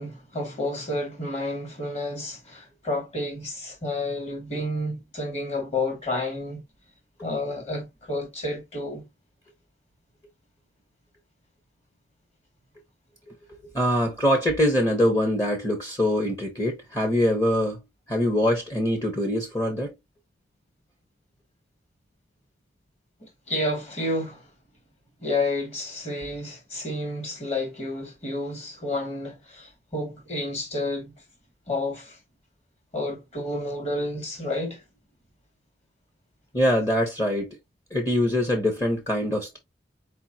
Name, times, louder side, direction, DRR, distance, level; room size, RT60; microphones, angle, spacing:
voice 1, 0.0-6.6 7.2-9.1 23.2-24.5 25.2-31.1 31.7-32.2 32.9-34.8, left 2 dB, 35° left, 2.5 m, -30 dB
voice 2, 13.7-17.8 18.1-19.9 36.5-37.6 37.9-39.6, left 1 dB, 20° left, 1.1 m, -23 dB
4.5 x 3.6 x 2.9 m
head